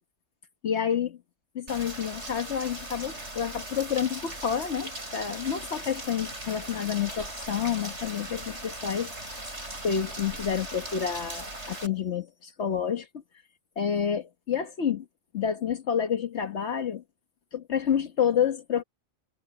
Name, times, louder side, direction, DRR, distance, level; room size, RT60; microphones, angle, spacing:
voice 1, 0.6-1.2 1.5-9.4 9.8-13.2 13.8-15.1 15.3-17.0 17.5-18.8, left 8 dB, 70° left, 1.4 m, -29 dB
Rain, 1.7-11.9, right 1 dB, 70° right, 8.4 m, -39 dB
omnidirectional pair, 1.2 m